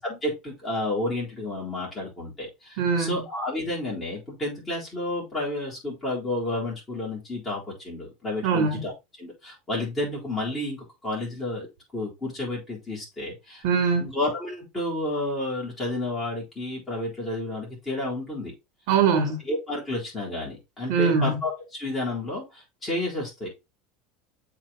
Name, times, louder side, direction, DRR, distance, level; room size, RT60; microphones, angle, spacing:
voice 1, 0.0-8.9 9.2-11.7 11.9-13.6 14.0-18.5 19.4-23.5, left 1 dB, 15° left, 3.9 m, -31 dB
voice 2, 2.8-3.2 8.4-8.8 13.6-14.1 18.9-19.4 20.9-21.4, right 5 dB, 65° right, 2.8 m, -22 dB
7.3 x 4.0 x 3.8 m
supercardioid pair, 155°, 0 cm